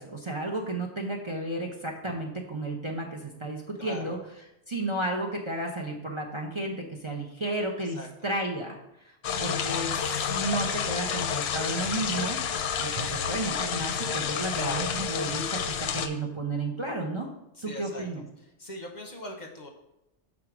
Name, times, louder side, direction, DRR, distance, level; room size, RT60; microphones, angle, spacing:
voice 1, 0.0-4.2 4.7-10.0 10.3-12.4 12.8-17.3 17.6-18.3, right 2 dB, 30° right, 0 dB, 0.7 m, -33 dB
voice 2, 3.8-4.1 7.8-8.1 14.5-14.9 17.6-18.0 18.6-19.7, left 2 dB, 40° left, 2 dB, 0.9 m, -39 dB
sound 1, 9.2-16.1, left 7 dB, 65° left, 0.8 m, -30 dB
6.4 x 3.7 x 5.9 m, 0.89 s
omnidirectional pair, 1.2 m